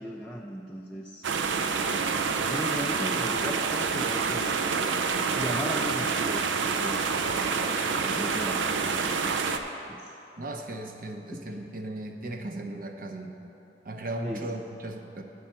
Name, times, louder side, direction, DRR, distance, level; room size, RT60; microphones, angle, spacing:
voice 1, 0.0-1.3 2.2-4.5 5.4-6.5 6.8-7.3 8.0-9.4 9.9-10.1 11.3-11.4 14.2-14.5, equal, 5° left, -1 dB, 0.3 m, -37 dB
sound 1, 1.2-9.6, right 5 dB, 85° right, 0.5 m, -27 dB
voice 2, 10.4-13.3 13.8-15.2, right 1 dB, 50° right, 4 dB, 0.7 m, -36 dB
8.4 x 5.5 x 7.4 m, 2.9 s
head